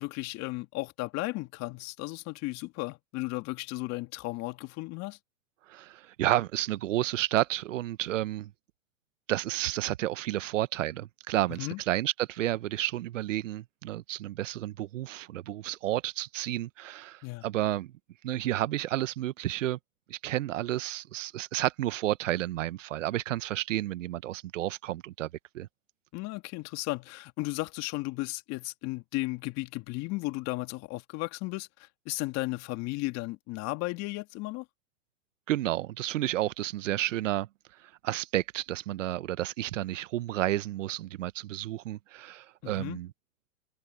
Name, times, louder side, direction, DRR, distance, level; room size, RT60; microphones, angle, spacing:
voice 1, 0.0-5.2 11.6-11.8 17.2-17.5 26.1-34.7 42.6-43.0, left 22 dB, 40° left, 2.3 m, -35 dB
voice 2, 5.7-8.5 9.3-17.9 18.2-19.8 20.1-25.3 25.5-25.7 35.5-37.5 37.8-43.1, right 14 dB, 65° right, 1.1 m, -31 dB
hypercardioid pair, 115°, 40 cm